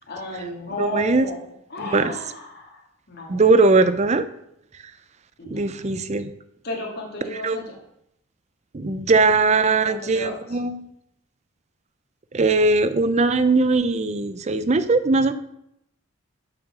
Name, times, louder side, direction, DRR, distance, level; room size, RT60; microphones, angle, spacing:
voice 1, 0.0-3.5 5.4-6.1 6.6-7.8 9.9-10.6 15.3-15.4, left 1 dB, 50° left, -2 dB, 2.2 m, -34 dB
voice 2, 0.8-1.2 1.9-2.1 3.3-4.3 5.5-6.3 7.4-7.6 8.7-10.8 12.3-15.3, right 3 dB, 35° right, 12 dB, 0.5 m, -19 dB
7.7 x 6.7 x 6.0 m, 0.78 s
head